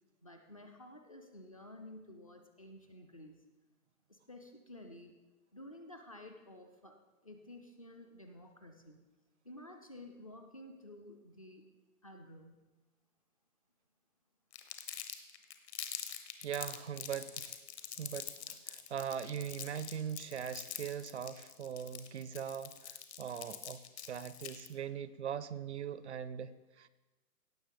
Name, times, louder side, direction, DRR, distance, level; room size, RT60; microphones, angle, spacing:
voice 1, 0.2-3.4 4.1-5.1 5.5-9.0 9.4-11.6 12.0-12.7, left 1 dB, 25° left, 4 dB, 0.4 m, -52 dB
Crumpling crinkling, 14.5-24.7, left 10 dB, 45° left, 1.1 m, -45 dB
voice 2, 16.4-17.5 18.0-26.9, right 8 dB, 50° right, 16 dB, 0.5 m, -41 dB
17.0 x 6.3 x 5.2 m, 1.2 s
hypercardioid pair, 155°, 45 cm